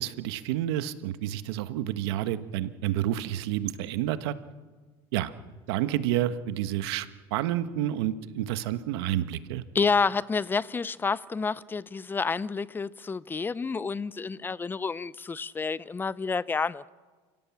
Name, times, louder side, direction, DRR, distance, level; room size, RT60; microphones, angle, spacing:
voice 1, 0.0-4.3 5.1-5.3 5.7-7.1 7.3-9.6, right 12 dB, 80° right, 1.3 m, -29 dB
voice 2, 9.7-16.9, left 4 dB, 15° left, 0.6 m, -29 dB
29.5 x 16.5 x 7.3 m
supercardioid pair, 120°, 13 cm